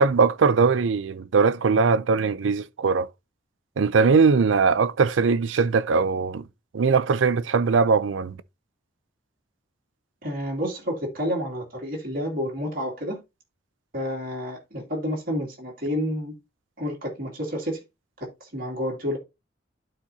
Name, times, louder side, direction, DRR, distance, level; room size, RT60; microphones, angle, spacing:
voice 1, 0.0-3.1 3.8-6.4 6.7-8.4, right 5 dB, 85° right, 0.5 m, -20 dB
voice 2, 10.2-13.2 13.9-16.3 16.8-17.8 18.2-19.2, equal, 50° right, 2.4 m, -29 dB
12.0 x 4.3 x 2.7 m
head